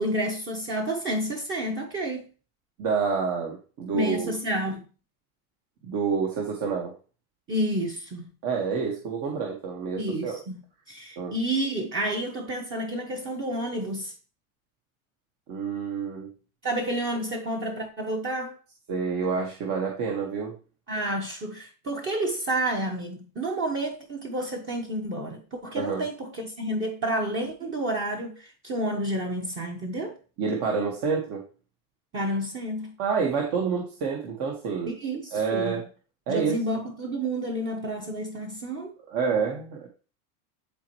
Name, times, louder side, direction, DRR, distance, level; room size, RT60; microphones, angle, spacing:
voice 1, 0.0-2.3 3.9-4.8 7.5-8.3 10.0-14.1 16.6-18.6 20.9-30.2 32.1-32.9 34.9-35.8 36.3-38.9, right 1 dB, 25° right, 1.3 m, -30 dB
voice 2, 2.8-4.3 5.8-6.9 8.4-10.4 11.2-11.3 15.5-16.3 18.9-20.5 25.8-26.0 30.4-31.4 33.0-34.9 35.3-35.8 36.3-36.6 39.1-39.9, right 5 dB, 45° right, 1.7 m, -28 dB
11.0 x 4.4 x 3.1 m
supercardioid pair, 130°, 44 cm